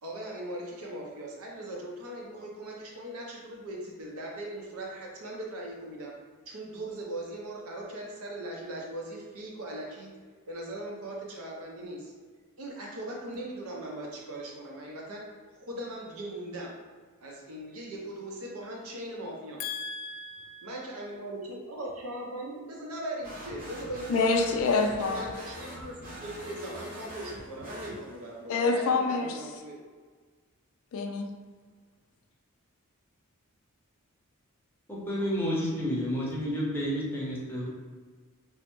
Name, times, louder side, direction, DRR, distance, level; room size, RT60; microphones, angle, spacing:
voice 1, 0.0-6.2 6.5-10.1 10.5-12.1 12.6-15.3 15.6-16.8 17.2-19.6 20.6-24.4 24.8-29.8, right 1 dB, 75° right, -1 dB, 0.7 m, -39 dB
voice 2, 19.6-20.7 24.1-25.3 28.5-29.4 30.9-31.3, left 4 dB, 65° left, 4 dB, 0.4 m, -27 dB
sound 1, 23.2-28.4, equal, 40° right, 0.8 m, -43 dB
voice 3, 34.9-37.7, equal, 10° left, -6 dB, 0.7 m, -30 dB
3.2 x 2.1 x 2.9 m, 1.5 s
head